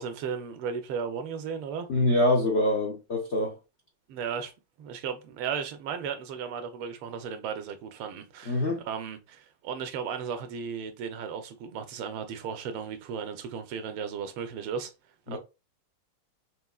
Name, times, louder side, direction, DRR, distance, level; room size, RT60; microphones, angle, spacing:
voice 1, 0.0-1.9 4.1-4.5 4.8-14.9 15.3-15.4, right 6 dB, 90° right, 1.7 m, -35 dB
voice 2, 1.9-3.5 8.5-8.8 15.3-15.4, left 1 dB, 65° left, 0.6 m, -25 dB
6.0 x 3.0 x 2.3 m
omnidirectional pair, 2.3 m